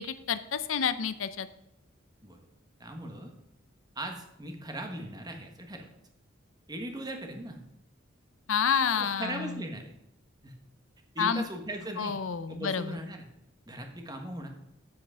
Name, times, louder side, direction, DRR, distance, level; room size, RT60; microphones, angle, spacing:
voice 1, 0.0-1.5 8.5-9.6 11.2-11.4 12.0-13.0, left 6 dB, 90° left, 13 dB, 0.6 m, -29 dB
voice 2, 2.8-3.3 3.9-5.9 6.7-7.6 9.0-9.9 10.4-10.5 11.1-12.2 12.5-13.2 13.7-14.5, right 1 dB, 20° right, 4 dB, 1.3 m, -39 dB
7.8 x 7.6 x 5.6 m, 0.83 s
head